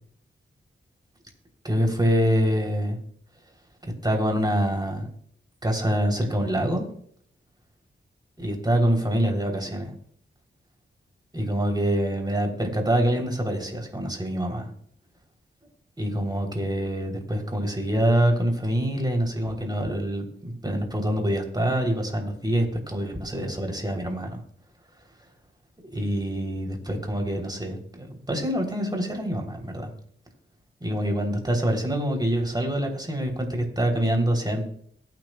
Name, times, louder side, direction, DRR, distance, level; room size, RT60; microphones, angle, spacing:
voice 1, 1.6-3.0 3.8-5.1 5.6-6.8 8.4-9.9 11.3-14.7 16.0-24.4 25.8-29.9 30.8-34.6, equal, 20° right, 2 dB, 3.4 m, -25 dB
22.0 x 9.1 x 2.3 m, 0.63 s
wide cardioid pair, 70°, 21 cm